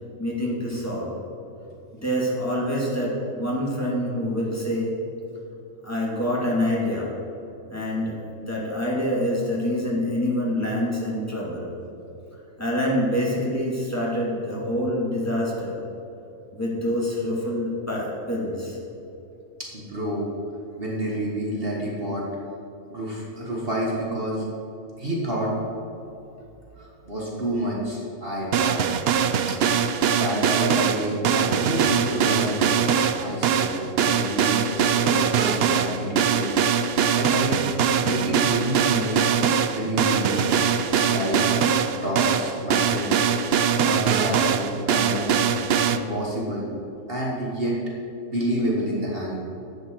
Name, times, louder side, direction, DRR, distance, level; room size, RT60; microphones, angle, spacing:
voice 1, 0.2-1.1 1.9-5.0 5.8-7.1 7.7-11.7 12.6-15.8 16.5-18.8, equal, 10° left, -5 dB, 2.3 m, -26 dB
voice 2, 19.6-20.3 20.8-22.2 22.9-24.4 25.0-25.5 26.8-28.9 30.1-37.6 38.0-39.3 39.7-40.5 41.0-41.4 41.9-43.2 43.8-45.3 45.9-46.7 47.1-47.8 48.3-49.4, equal, 40° right, -4 dB, 1.7 m, -29 dB
sound 1, 28.5-46.0, right 7 dB, 70° right, 0.6 m, -22 dB
12.0 x 8.3 x 4.6 m, 2.8 s
omnidirectional pair, 1.6 m